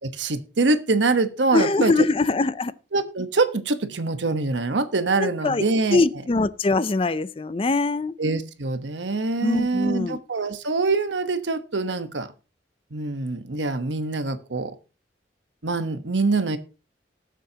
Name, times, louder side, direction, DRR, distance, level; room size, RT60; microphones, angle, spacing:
voice 1, 0.0-2.1 2.9-6.0 8.2-12.3 12.9-14.7 15.6-16.6, right 3 dB, 85° right, 1.1 m, -24 dB
voice 2, 1.5-2.7 5.2-5.6 5.9-8.1 9.4-10.2, left 3 dB, 30° left, 0.4 m, -22 dB
19.5 x 7.5 x 2.9 m
head